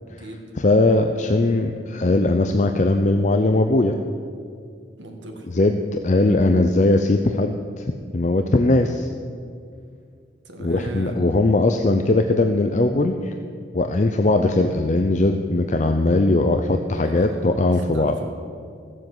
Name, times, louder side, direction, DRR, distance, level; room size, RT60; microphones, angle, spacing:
voice 1, 0.6-4.0 5.5-7.8 8.1-9.1 10.6-13.3 13.7-18.1, left 2 dB, 40° left, 6 dB, 0.6 m, -19 dB
voice 2, 5.0-5.5 10.4-11.4 16.9-18.2, right 1 dB, 85° right, 3 dB, 1.9 m, -36 dB
15.0 x 7.6 x 7.9 m, 2.2 s
head